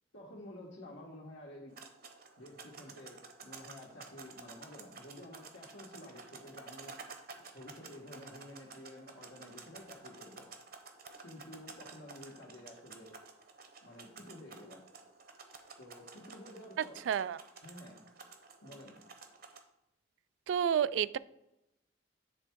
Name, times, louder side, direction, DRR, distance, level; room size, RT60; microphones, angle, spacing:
voice 1, 0.1-1.7 2.4-7.0 7.5-10.5 11.2-13.2 13.8-14.8 15.8-17.0 17.6-18.0 18.6-19.0, left 1 dB, 90° left, -5 dB, 1.6 m, -51 dB
sound 1, 1.7-19.6, right 4 dB, 55° right, 0.9 m, -52 dB
voice 2, 17.1-17.4 20.5-21.2, right 8 dB, 85° right, 18 dB, 0.3 m, -30 dB
9.8 x 3.5 x 4.6 m, 0.90 s
head